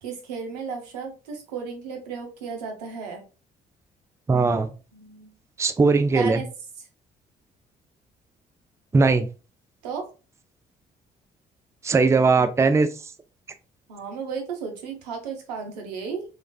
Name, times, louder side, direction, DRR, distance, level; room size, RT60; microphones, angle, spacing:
voice 1, 0.0-3.2 4.9-5.3 6.1-6.5 9.8-10.0 13.9-16.2, right 5 dB, 85° right, 3 dB, 0.7 m, -34 dB
voice 2, 4.3-4.7 5.6-6.4 8.9-9.3 11.8-12.9, right 4 dB, 15° right, 10 dB, 0.4 m, -19 dB
3.1 x 2.4 x 2.3 m, 0.33 s
hypercardioid pair, 50°, 20 cm